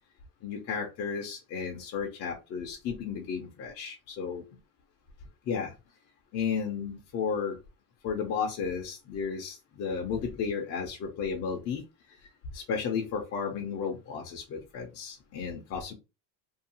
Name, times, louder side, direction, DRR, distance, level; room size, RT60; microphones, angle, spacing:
voice 1, 0.4-4.4 5.5-5.7 6.3-7.6 8.0-11.8 12.5-15.9, left 6 dB, 30° left, 0 dB, 0.5 m, -33 dB
2.7 x 2.3 x 2.7 m, 0.27 s
cardioid pair, 145°, 49 cm